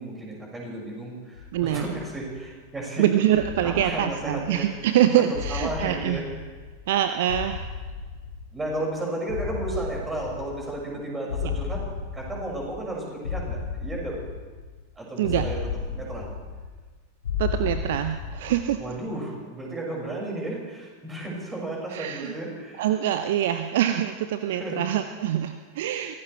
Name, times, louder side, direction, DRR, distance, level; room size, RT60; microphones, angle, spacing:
voice 1, 0.0-3.1 3.6-4.7 5.5-6.3 8.5-11.9 12.1-14.2 15.0-15.6 15.9-16.3 18.8-22.9 24.5-24.8, right 1 dB, 10° right, -2 dB, 6.0 m, -33 dB
sound 1, 1.3-2.7 3.3-4.9 5.3-7.0 7.3-8.9 9.3-10.9 11.3-12.9 13.2-14.8 15.2-16.9 17.2-18.9, left 6 dB, 65° left, 2.0 m, -34 dB
voice 2, 1.5-1.8 3.0-6.2 6.9-7.7 11.4-11.5 15.2-15.5 17.4-18.8 21.9-22.4 22.8-26.1, right 11 dB, 55° right, 9 dB, 0.7 m, -24 dB
23.5 x 17.0 x 3.4 m, 1.4 s
figure-of-eight pair, 90°, 0 cm